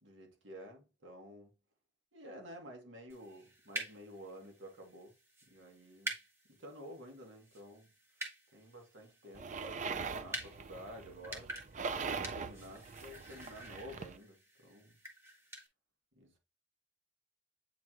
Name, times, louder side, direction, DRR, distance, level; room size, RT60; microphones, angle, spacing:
voice 1, 0.0-1.5 2.1-5.1 5.5-6.1 6.6-7.9 8.5-11.5 12.1-15.0 16.1-16.4, equal, 80° right, 1.8 m, -51 dB
sound 1, 3.1-15.7, right 1 dB, 15° right, 1.3 m, -48 dB
sound 2, 9.3-14.2, right 5 dB, 40° right, 0.4 m, -42 dB
8.4 x 3.8 x 2.9 m
head